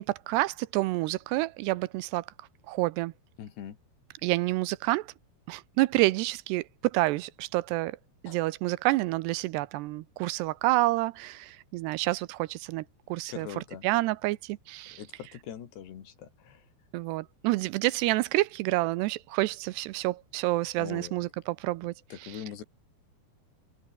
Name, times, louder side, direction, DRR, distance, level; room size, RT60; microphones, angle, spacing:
voice 1, 0.0-2.3 2.7-3.1 4.2-5.1 5.5-8.0 8.2-12.8 13.1-15.0 16.9-21.9 22.2-22.4, right 19 dB, 85° right, 2.7 m, -28 dB
voice 2, 3.4-3.8 8.3-8.4 13.3-13.9 14.9-16.6 20.8-21.2 22.1-22.6, left 9 dB, 75° left, 4.8 m, -42 dB
omnidirectional pair, 4.9 m